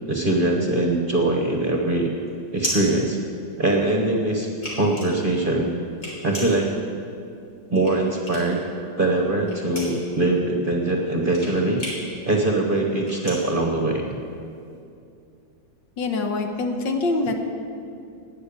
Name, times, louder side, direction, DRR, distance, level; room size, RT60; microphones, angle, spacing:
voice 1, 0.1-2.1 2.5-3.2 3.6-4.5 4.8-5.7 6.2-6.7 7.7-8.6 9.0-11.8 12.2-14.1, right 2 dB, 30° right, 1 dB, 1.1 m, -22 dB
sound 1, 1.3-3.9 4.3-8.7 9.0-14.5, equal, 50° left, 4.2 m, -35 dB
voice 2, 16.0-17.3, left 3 dB, 70° left, 4 dB, 1.8 m, -24 dB
12.5 x 9.5 x 8.8 m, 2.5 s
omnidirectional pair, 2.2 m